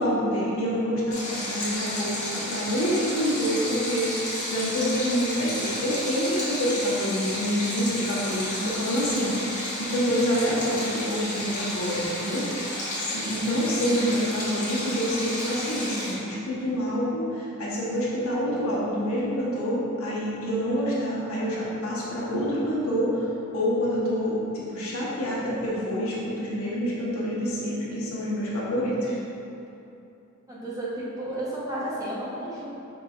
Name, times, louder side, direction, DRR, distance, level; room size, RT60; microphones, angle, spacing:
voice 1, 0.0-12.5 12.7-29.2, equal, 80° left, -6 dB, 1.1 m, -27 dB
Stream, 1.1-16.1, left 1 dB, 35° left, 1.2 m, -32 dB
voice 2, 30.5-32.6, right 1 dB, 15° right, -8 dB, 0.9 m, -32 dB
5.4 x 4.0 x 2.4 m, 2.8 s
head